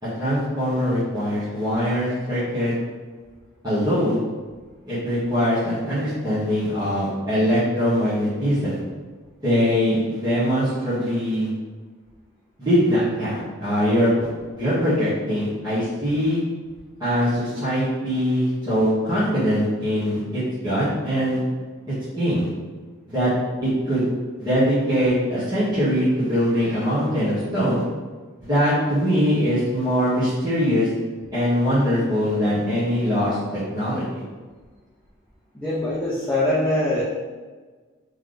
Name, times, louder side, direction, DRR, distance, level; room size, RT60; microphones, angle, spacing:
voice 1, 0.0-2.7 3.6-4.2 4.9-8.8 9.4-11.5 12.6-14.3 14.6-16.4 17.0-21.4 22.2-22.5 23.1-23.3 23.6-24.1 24.4-27.8 28.4-30.9 31.3-34.0, equal, 20° right, -15 dB, 1.5 m, -22 dB
voice 2, 35.5-37.0, left 1 dB, 5° left, -9 dB, 0.6 m, -23 dB
3.4 x 3.3 x 3.9 m, 1.4 s
head